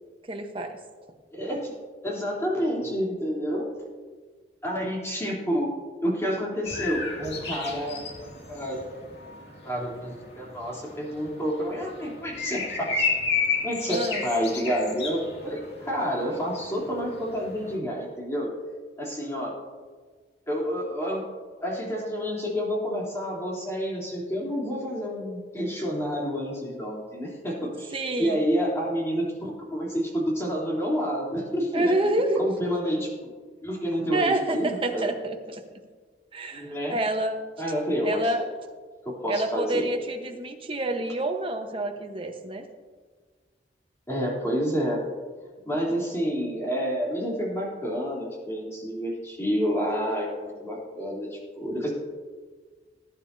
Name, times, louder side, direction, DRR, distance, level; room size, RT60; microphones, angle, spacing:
voice 1, 0.3-0.8 13.9-14.2 27.9-28.4 31.7-32.4 34.1-35.6 36.3-37.4 38.0-38.4 39.3-42.6, right 2 dB, 30° right, 4 dB, 1.1 m, -28 dB
voice 2, 1.3-1.7 2.0-3.7 4.6-5.7 6.0-8.0 8.5-8.7 9.6-13.1 13.6-18.5 19.0-19.5 20.5-21.2 21.6-31.9 32.3-33.1 33.6-35.1 36.5-37.0 37.6-38.3 39.0-39.9 44.1-45.0 45.6-51.9, equal, 15° left, -4 dB, 3.3 m, -29 dB
sound 1, 6.6-17.8, left 4 dB, 70° left, 2.4 m, -33 dB
19.5 x 10.0 x 2.8 m, 1.5 s
head